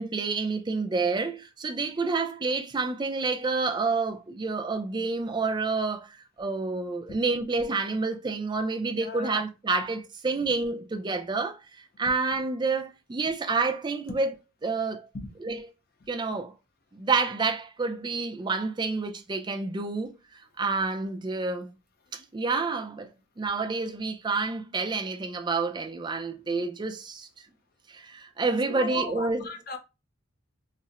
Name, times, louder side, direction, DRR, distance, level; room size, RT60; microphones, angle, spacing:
voice 1, 0.0-14.3 14.6-15.1 15.4-15.7 16.1-16.5 16.9-21.7 22.1-23.1 23.4-27.3 27.9-29.5, right 4 dB, 20° right, 0.3 m, -29 dB
voice 2, 9.0-9.4 15.1-15.3 28.7-29.8, left 4 dB, 45° left, 0.5 m, -38 dB
4.1 x 2.0 x 2.3 m
head